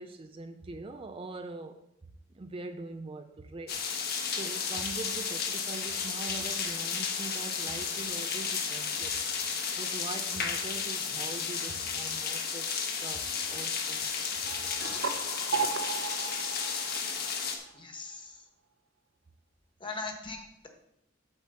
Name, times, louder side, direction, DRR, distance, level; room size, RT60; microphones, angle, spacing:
voice 1, 0.0-1.8 2.3-3.8 4.3-9.3 9.8-12.8 13.0-14.1 14.5-14.6, right 3 dB, 30° right, 7 dB, 0.4 m, -42 dB
sound 1, 3.7-17.6, left 6 dB, 50° left, 1.1 m, -33 dB
sound 2, 14.5-17.8, right 5 dB, 75° right, 0.7 m, -35 dB
voice 2, 17.4-18.4 19.8-20.7, left 3 dB, 25° left, 4 dB, 1.2 m, -41 dB
8.2 x 4.5 x 6.7 m, 0.81 s
head